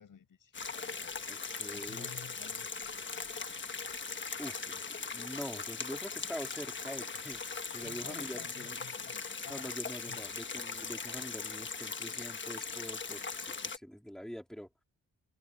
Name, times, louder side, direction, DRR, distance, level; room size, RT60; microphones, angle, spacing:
voice 1, 0.0-1.2 1.7-3.2 7.8-9.7 10.1-10.2, left 7 dB, 75° left, 6.8 m, -53 dB
sound 1, 0.5-13.8, left 5 dB, 35° left, 1.3 m, -40 dB
voice 2, 1.3-2.1 4.4-8.8 9.5-14.7, equal, ahead, 3.4 m, -44 dB
wide cardioid pair, 155°, 34 cm